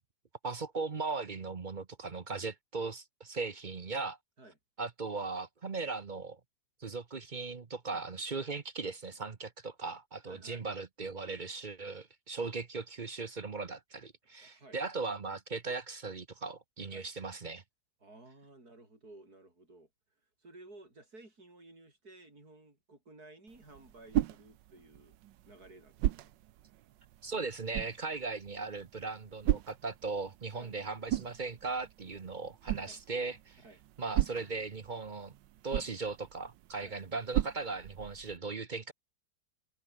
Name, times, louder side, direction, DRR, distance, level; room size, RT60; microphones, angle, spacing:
voice 1, 0.4-4.2 4.8-6.4 6.8-17.6 27.2-33.6 34.0-35.3 35.6-38.9, right 4 dB, 35° right, 0.8 m, -38 dB
voice 2, 10.2-10.6 12.4-12.5 14.4-14.8 16.9-17.1 18.0-19.9 20.4-25.1 25.5-26.3 30.5-30.8 32.8-33.0 33.6-33.8 36.8-37.0, right 2 dB, 55° right, 8.1 m, -55 dB
sound 1, 23.5-38.4, right 13 dB, 75° right, 1.4 m, -38 dB
omnidirectional pair, 2.0 m